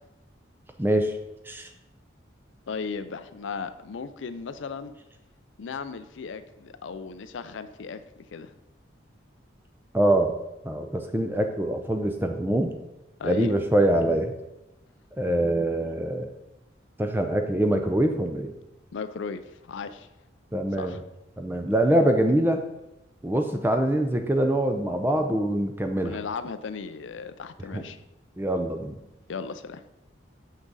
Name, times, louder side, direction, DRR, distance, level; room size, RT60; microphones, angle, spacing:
voice 1, 0.8-1.1 1.5-1.7 9.9-10.4 10.6-12.7 13.2-14.3 15.2-16.3 17.0-18.5 20.5-21.0 21.4-22.6 23.2-26.2 27.7-27.8 28.4-29.0, right 1 dB, 10° right, 5 dB, 0.5 m, -24 dB
voice 2, 2.7-4.9 5.6-8.0 8.3-8.5 13.2-13.5 18.9-19.4 19.7-20.1 20.7-21.0 26.0-28.0 29.3-29.8, left 5 dB, 80° left, 11 dB, 0.4 m, -36 dB
6.2 x 6.1 x 4.0 m, 0.93 s
head